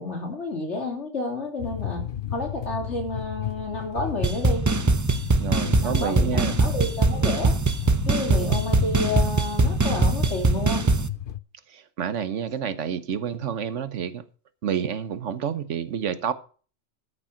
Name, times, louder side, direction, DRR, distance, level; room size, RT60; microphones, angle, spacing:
voice 1, 0.0-2.0 2.3-4.7 5.8-7.6 8.1-10.9, left 2 dB, 70° left, 3.4 m, -30 dB
sound 1, 1.6-11.4, left 11 dB, 55° left, 0.7 m, -33 dB
sound 2, 4.2-11.1, right 3 dB, 30° right, 0.3 m, -22 dB
voice 2, 5.4-6.5 11.7-14.2 14.6-16.3, right 8 dB, 80° right, 1.3 m, -29 dB
14.0 x 6.7 x 5.7 m
omnidirectional pair, 1.2 m